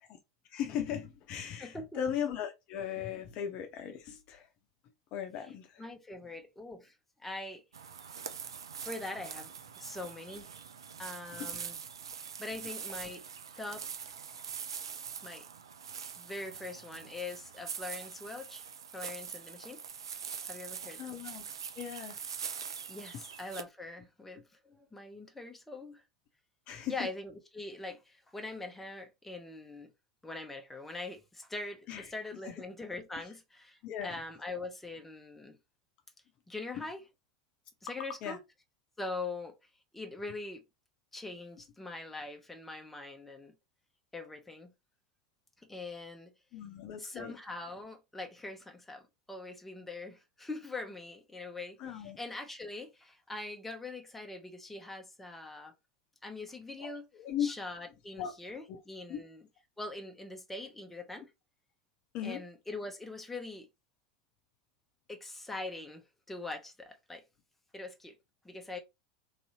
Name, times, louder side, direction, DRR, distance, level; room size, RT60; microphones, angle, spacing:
voice 1, 0.5-4.5 5.1-5.8 11.4-11.5 21.0-21.5 21.8-22.2 26.7-26.9 31.9-32.0 32.4-32.6 33.8-34.1 38.2-38.4 46.5-47.3 51.8-52.2 56.8-57.5 58.2-58.3 58.7-58.8 59.1-59.2 62.1-62.4, left 9 dB, 45° left, 0.6 m, -37 dB
voice 2, 1.6-2.0 5.8-6.9 7.2-7.6 8.8-10.5 11.0-11.8 12.1-13.2 13.5-14.1 15.2-15.5 16.2-18.6 18.9-19.8 20.5-21.2 22.9-26.0 26.9-29.9 30.2-35.6 36.5-37.0 37.8-38.4 39.0-39.5 39.9-40.6 41.1-43.5 44.1-44.7 45.7-46.3 47.0-49.0 49.3-55.7 56.2-57.1 57.4-59.4 59.8-61.3 62.2-63.7 65.1-67.2 67.7-68.2 68.4-68.8, left 2 dB, 10° left, 0.7 m, -43 dB
sound 1, 7.7-23.6, right 7 dB, 70° right, 0.4 m, -43 dB
3.1 x 2.7 x 2.8 m
figure-of-eight pair, 80°, 3 cm